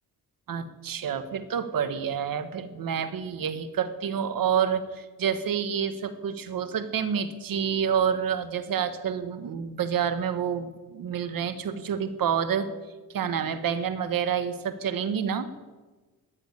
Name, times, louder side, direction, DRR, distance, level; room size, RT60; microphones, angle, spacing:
voice 1, 0.5-12.7 13.1-15.5, right 8 dB, 60° right, 10 dB, 1.4 m, -28 dB
13.5 x 8.9 x 9.9 m, 1.3 s
cardioid pair, 120°, 39 cm